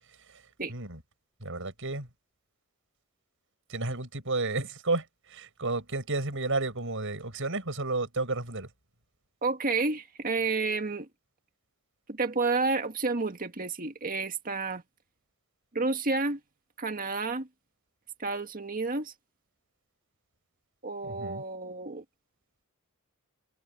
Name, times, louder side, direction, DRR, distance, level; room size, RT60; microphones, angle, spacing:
voice 1, 0.7-1.0 1.4-2.1 3.7-8.7 21.0-21.4, right 2 dB, 65° right, 7.5 m, -32 dB
voice 2, 9.4-11.1 12.1-14.8 15.7-16.4 16.8-17.5 18.2-19.1 20.8-22.0, right 3 dB, 40° right, 1.9 m, -30 dB
head